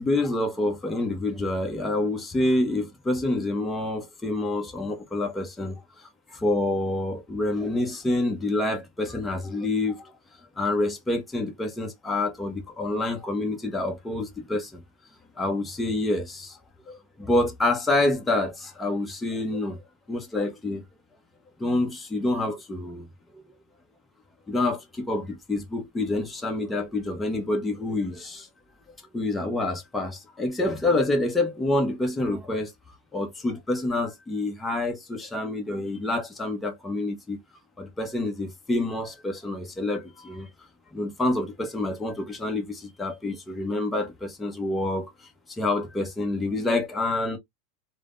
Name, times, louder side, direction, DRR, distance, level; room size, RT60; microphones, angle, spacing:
voice 1, 0.0-10.1 10.6-14.8 15.4-16.6 16.9-19.8 20.1-20.8 21.6-23.1 23.3-23.4 24.5-28.5 29.1-32.7 33.1-37.4 37.8-40.5 40.9-45.1 45.6-47.4, left 2 dB, 10° left, 0.8 m, -27 dB
3.3 x 2.1 x 2.5 m
supercardioid pair, 125°, 0 cm